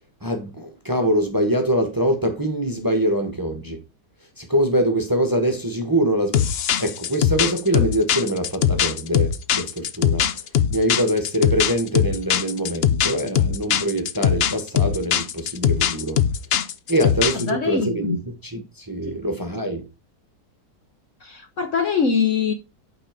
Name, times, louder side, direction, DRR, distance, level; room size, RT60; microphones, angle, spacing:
voice 1, 0.2-3.8 4.4-6.5 6.8-10.3 10.7-16.2 16.9-19.8, equal, 15° right, 1.2 m, -24 dB
sound 1, 6.3-17.5, left 9 dB, 85° left, 0.5 m, -21 dB
voice 2, 17.3-18.2 19.1-19.2 21.2-22.5, left 6 dB, 55° left, 1.0 m, -23 dB
9.0 x 4.2 x 5.1 m
omnidirectional pair, 1.8 m